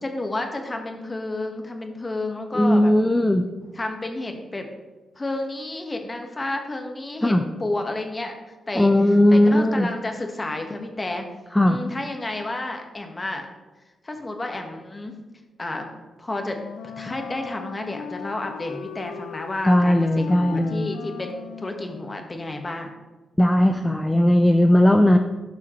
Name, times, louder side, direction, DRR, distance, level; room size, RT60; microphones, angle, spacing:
voice 1, 0.0-2.9 3.7-4.7 5.1-7.3 7.6-8.9 9.3-11.2 11.6-13.5 14.0-15.1 15.6-16.6 17.0-22.9, left 2 dB, 30° left, 4 dB, 1.4 m, -31 dB
voice 2, 2.5-3.4 7.2-7.4 8.8-9.9 11.5-11.8 19.6-20.9 23.4-25.2, left 1 dB, 15° left, 4 dB, 0.6 m, -17 dB
Wind instrument woodwind instrument, 16.4-22.3, left 7 dB, 85° left, 0.5 m, -38 dB
12.5 x 5.6 x 3.1 m, 1.2 s
supercardioid pair, 50°, 0 cm